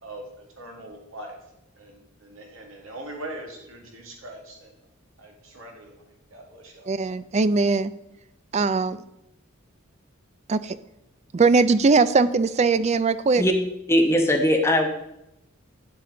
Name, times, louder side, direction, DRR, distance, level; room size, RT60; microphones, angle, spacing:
voice 1, 0.0-1.4 1.8-4.7 5.2-6.9, right 1 dB, 75° right, 1 dB, 2.2 m, -41 dB
voice 2, 6.9-7.9 8.5-9.0 10.5-10.8 11.3-13.4, right 4 dB, 30° right, 14 dB, 0.4 m, -20 dB
voice 3, 13.9-14.9, equal, 15° left, 3 dB, 1.0 m, -19 dB
9.7 x 7.7 x 3.8 m, 0.85 s
head